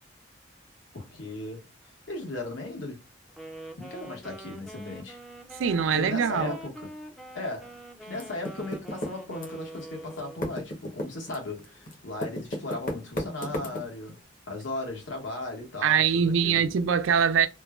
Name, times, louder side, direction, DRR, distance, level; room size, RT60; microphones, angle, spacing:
voice 1, 0.9-1.7 2.1-3.0 3.8-5.2 5.9-6.9 7.3-7.7 8.0-14.2 14.5-16.7, left 2 dB, 80° left, 1.3 m, -37 dB
Wind instrument woodwind instrument, 3.3-10.6, right 1 dB, ahead, 0.3 m, -44 dB
voice 2, 5.6-6.6 15.8-17.5, right 7 dB, 85° right, 0.4 m, -23 dB
Typing, 8.1-9.8 10.1-14.1, equal, 45° left, 0.8 m, -34 dB
3.0 x 2.2 x 2.3 m
head